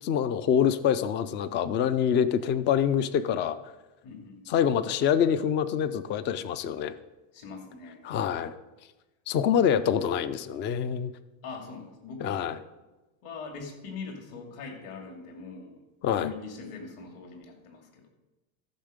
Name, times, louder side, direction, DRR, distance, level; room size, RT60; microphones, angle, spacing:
voice 1, 0.0-3.6 4.5-6.9 8.0-8.6 9.3-11.1 12.2-12.6 16.0-16.3, left 8 dB, 30° left, 14 dB, 0.4 m, -25 dB
voice 2, 4.0-4.4 7.3-8.1 11.4-12.4 13.2-18.1, left 5 dB, 55° left, 3 dB, 2.6 m, -42 dB
14.0 x 6.5 x 5.1 m, 1.1 s
supercardioid pair, 150°, 42 cm